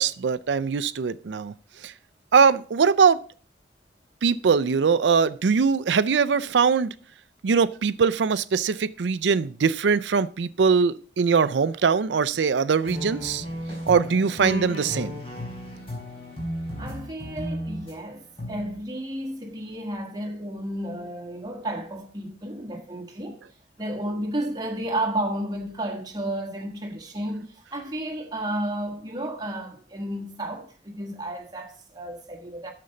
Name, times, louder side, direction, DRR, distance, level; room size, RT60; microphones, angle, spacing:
voice 1, 0.0-1.5 1.8-1.9 2.3-3.2 4.2-6.9 7.4-13.4 13.9-15.2, right 5 dB, 85° right, 0.4 m, -21 dB
sound 1, 12.8-17.9 18.4-18.8, equal, 35° left, 4.1 m, -34 dB
voice 2, 16.8-23.4 23.8-32.7, right 1 dB, 25° right, 1.4 m, -32 dB
9.6 x 6.8 x 3.9 m
head